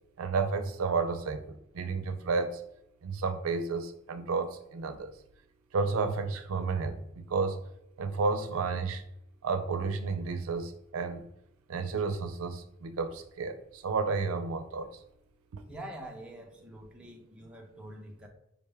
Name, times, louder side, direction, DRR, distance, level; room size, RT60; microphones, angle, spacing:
voice 1, 0.2-2.6 3.0-5.1 5.7-7.6 8.0-9.0 9.4-11.2 11.7-14.9 15.5-15.6, right 4 dB, 80° right, 9 dB, 0.4 m, -31 dB
voice 2, 15.7-18.3, right 1 dB, 5° right, -1 dB, 0.5 m, -45 dB
5.1 x 2.2 x 3.3 m, 0.79 s
head